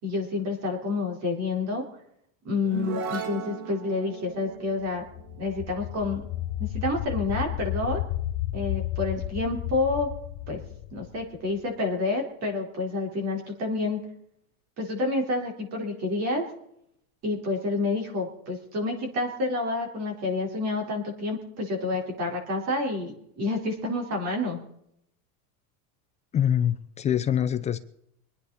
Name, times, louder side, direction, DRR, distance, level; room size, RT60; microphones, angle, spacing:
voice 1, 0.0-1.8 2.4-5.0 5.4-6.2 6.6-8.0 8.5-10.1 10.5-10.6 10.9-14.0 14.8-16.4 17.2-24.6, left 3 dB, 35° right, 2 dB, 4.4 m, -29 dB
sound 1, 2.6-6.3, right 5 dB, 55° right, 3.0 m, -37 dB
sound 2, 4.9-11.7, left 14 dB, 50° left, 0.8 m, -33 dB
voice 2, 26.3-27.8, left 9 dB, 15° left, 9 dB, 0.5 m, -24 dB
24.5 x 9.8 x 4.2 m, 0.73 s
supercardioid pair, 150°, 43 cm